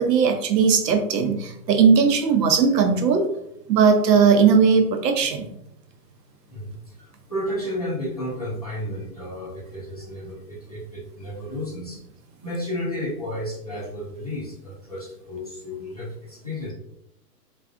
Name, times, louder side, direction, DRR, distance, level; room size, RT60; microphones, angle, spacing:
voice 1, 0.0-3.3 3.7-5.5, right 6 dB, 85° right, 5 dB, 0.8 m, -18 dB
voice 2, 6.5-12.0 12.4-16.7, left 1 dB, 30° left, -6 dB, 0.3 m, -32 dB
3.5 x 2.4 x 2.4 m, 0.76 s
hypercardioid pair, 150°, 48 cm